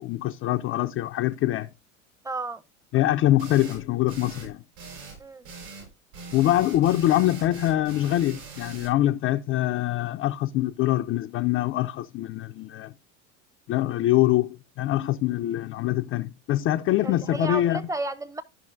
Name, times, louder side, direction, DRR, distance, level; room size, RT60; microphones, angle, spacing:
voice 1, 0.0-1.7 2.9-4.6 6.3-12.9 13.7-17.8, left 14 dB, 35° left, 0.4 m, -24 dB
voice 2, 2.2-2.6 5.2-5.5 17.0-18.4, right 2 dB, 10° right, 0.7 m, -32 dB
sound 1, 3.4-3.8 4.1-4.5 4.8-5.2 5.4-5.9 6.1-8.9, right 4 dB, 70° right, 4.1 m, -42 dB
13.5 x 5.3 x 2.6 m
hypercardioid pair, 80°, 42 cm